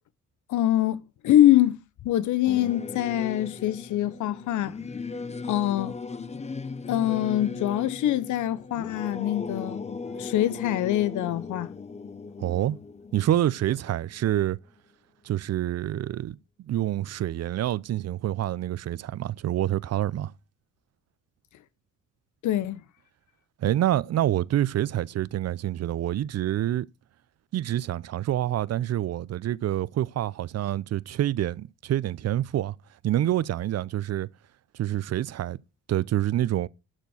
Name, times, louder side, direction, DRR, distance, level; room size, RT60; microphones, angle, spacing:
voice 1, 0.5-1.8 2.0-4.8 5.5-6.0 6.9-9.8 10.2-11.7 22.4-22.8, left 13 dB, 75° left, 0.9 m, -24 dB
Singing / Musical instrument, 2.4-14.3, left 4 dB, 20° left, 0.8 m, -38 dB
voice 2, 12.4-12.8 13.1-14.6 15.2-20.3 23.6-26.9 27.5-32.7 33.0-34.3 34.7-35.6 35.9-36.7, right 12 dB, 55° right, 0.6 m, -27 dB
12.0 x 4.4 x 7.7 m
cardioid pair, 90°, 30 cm